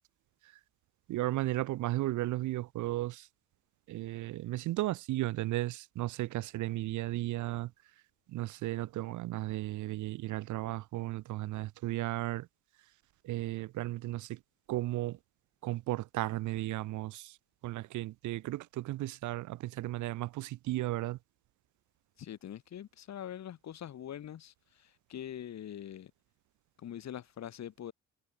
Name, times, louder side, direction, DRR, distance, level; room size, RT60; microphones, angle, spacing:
voice 1, 1.1-3.3 3.9-7.7 8.3-12.5 13.2-14.4 14.7-15.2 15.6-17.4 17.6-21.2, right 16 dB, 75° right, 0.6 m, -35 dB
voice 2, 22.2-26.1 26.8-27.9, left 10 dB, 60° left, 2.6 m, -43 dB
cardioid pair, 90°, 30 cm